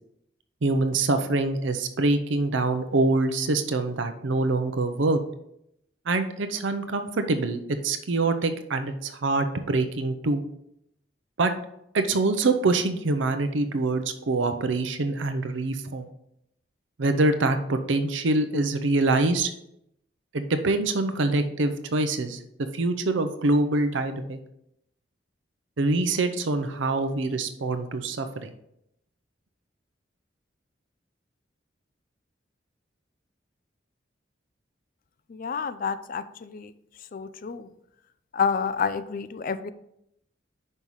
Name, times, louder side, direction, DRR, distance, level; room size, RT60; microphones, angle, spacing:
voice 1, 0.6-5.2 6.1-10.4 11.4-11.5 11.9-16.1 17.0-19.5 20.3-22.4 22.7-24.4 25.8-28.5, right 2 dB, 85° right, 8 dB, 0.6 m, -25 dB
voice 2, 35.3-36.7 37.1-37.7 38.3-39.7, left 6 dB, 50° left, 13 dB, 0.4 m, -29 dB
5.5 x 5.4 x 4.7 m, 0.78 s
head